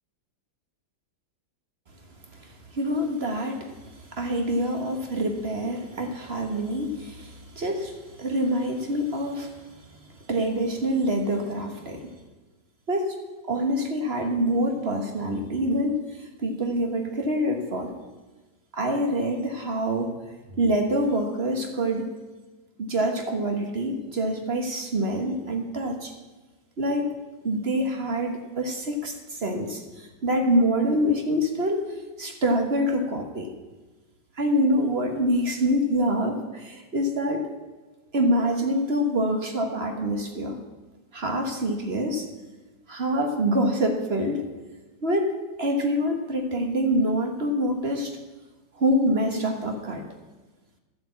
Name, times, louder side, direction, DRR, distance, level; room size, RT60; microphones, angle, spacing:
voice 1, 2.7-3.7 4.1-9.5 10.3-12.1 12.9-13.1 13.5-16.0 16.4-17.9 18.7-20.1 20.5-22.1 22.8-26.1 26.8-27.1 27.4-31.8 32.2-33.5 34.4-37.5 38.1-40.6 41.1-42.3 42.9-44.5 45.0-45.3 45.6-48.1 48.8-50.0, equal, 35° right, 3 dB, 1.3 m, -25 dB
12.0 x 7.9 x 8.5 m, 1.2 s
omnidirectional pair, 2.0 m